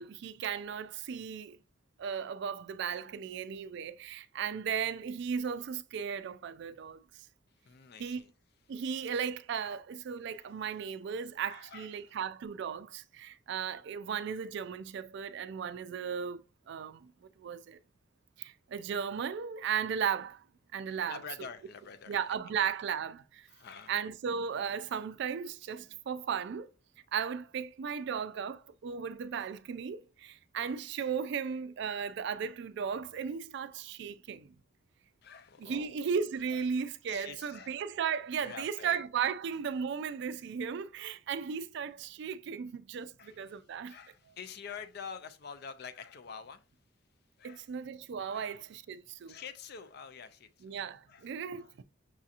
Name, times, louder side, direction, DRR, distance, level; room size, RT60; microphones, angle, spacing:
voice 1, 0.0-1.6 2.0-7.0 8.0-8.2 8.7-16.4 16.7-17.1 17.4-17.8 18.4-20.4 20.7-21.2 22.1-23.5 23.9-26.7 27.1-34.5 35.6-44.0 47.4-49.4 50.6-51.8, right 7 dB, 60° right, 0.3 m, -36 dB
voice 2, 7.6-8.3 9.6-9.7 10.3-10.5 11.5-12.2 21.1-22.2 22.5-22.6 23.5-23.9 35.2-36.0 36.5-37.8 38.4-39.0 43.2-43.6 43.9-46.6 47.4-47.7 48.3-48.5 49.3-50.7 51.1-51.3 51.6-51.7, left 6 dB, 55° left, 0.4 m, -47 dB
6.1 x 2.8 x 2.4 m
head